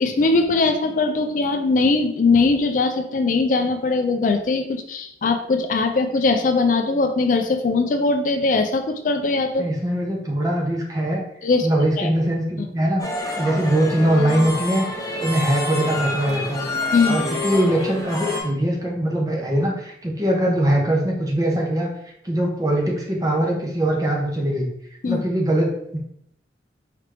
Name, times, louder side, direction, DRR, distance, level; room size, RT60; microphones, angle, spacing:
voice 1, 0.0-9.7 11.4-11.7 12.0-12.1 16.9-17.2 25.0-25.2, left 3 dB, 45° left, 6 dB, 0.4 m, -20 dB
voice 2, 9.6-11.2 11.6-13.0 13.3-14.9 15.2-21.9 22.2-24.7 25.0-26.0, right 1 dB, 20° right, -1 dB, 0.8 m, -22 dB
sound 1, 13.0-18.4, left 2 dB, 20° left, 0.7 m, -28 dB
4.9 x 3.0 x 3.3 m, 0.74 s
head